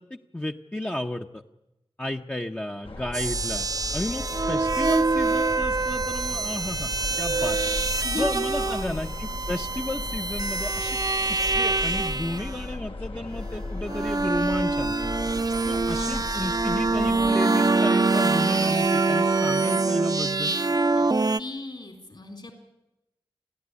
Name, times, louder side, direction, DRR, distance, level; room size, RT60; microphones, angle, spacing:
voice 1, 0.0-1.4 2.0-6.9 7.2-7.6 8.1-11.0 11.6-15.0 15.6-20.5, left 1 dB, 15° left, 1 dB, 0.8 m, -33 dB
sound 1, 2.8-17.3, left 2 dB, 75° left, 2.1 m, -36 dB
sound 2, 3.1-12.6 13.5-21.4, right 3 dB, 40° right, 0.7 m, -25 dB
voice 2, 8.6-9.1 15.9-16.3 20.9-21.0 21.4-22.5, left 2 dB, 60° left, 4 dB, 3.8 m, -36 dB
29.5 x 11.0 x 9.7 m, 0.92 s
wide cardioid pair, 60°, 10 cm